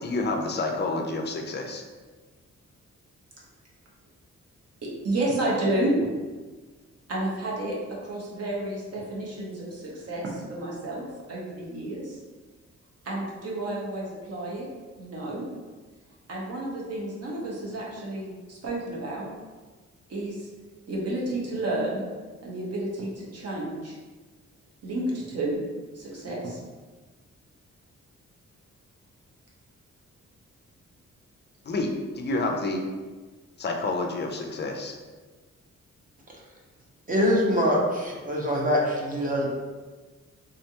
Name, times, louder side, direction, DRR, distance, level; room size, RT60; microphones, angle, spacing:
voice 1, 0.0-1.8 31.6-32.8 33.6-34.9, left 2 dB, 40° left, 2 dB, 0.4 m, -29 dB
voice 2, 4.8-6.1 7.1-12.2 13.0-14.7 15.0-15.5 16.3-19.3 20.1-20.5 20.9-22.0 22.4-24.0 24.8-25.6 25.9-26.6, right 1 dB, 55° right, -4 dB, 1.1 m, -31 dB
voice 3, 37.1-39.5, equal, 30° right, -2 dB, 0.7 m, -24 dB
3.6 x 3.2 x 2.8 m, 1.3 s
wide cardioid pair, 160°, 29 cm